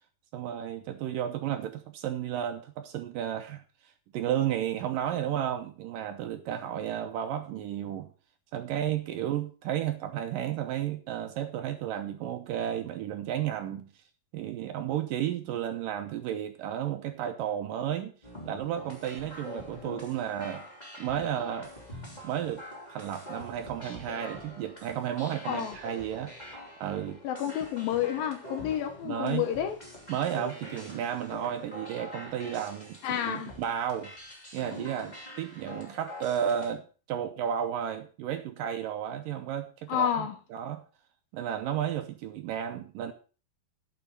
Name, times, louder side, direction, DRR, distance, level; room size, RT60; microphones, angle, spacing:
voice 1, 0.3-3.6 4.1-8.1 8.5-13.9 14.3-18.2 18.5-20.6 21.0-21.7 22.2-22.6 22.9-26.3 26.8-27.2 29.0-29.5 30.1-34.1 34.5-40.8 41.3-43.1, right 10 dB, 75° right, 2.2 m, -33 dB
sound 1, 18.2-36.7, left 1 dB, 10° left, 3.0 m, -45 dB
voice 2, 27.2-29.8 33.0-33.5 39.9-40.4, left 10 dB, 75° left, 2.6 m, -30 dB
11.0 x 7.1 x 5.4 m
omnidirectional pair, 4.5 m